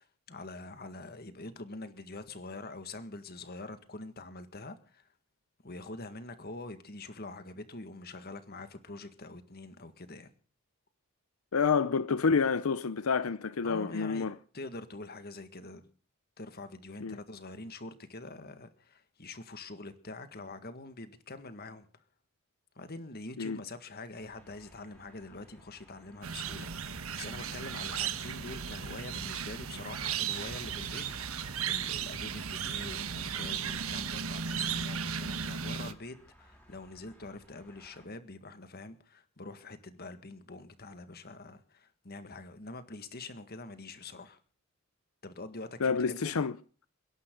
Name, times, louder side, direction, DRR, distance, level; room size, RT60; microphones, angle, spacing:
voice 1, 0.0-5.1 5.6-10.3 13.6-15.9 16.4-21.9 22.8-31.1 31.3-44.4 45.2-46.3, left 2 dB, 50° left, 1.8 m, -45 dB
voice 2, 11.5-14.4 17.0-17.2 23.4-23.6 45.8-46.5, left 5 dB, 90° left, 0.7 m, -28 dB
sound 1, 24.2-38.1, equal, 5° left, 5.1 m, -60 dB
sound 2, 26.2-35.9, right 7 dB, 80° right, 1.3 m, -36 dB
29.0 x 11.5 x 3.9 m
head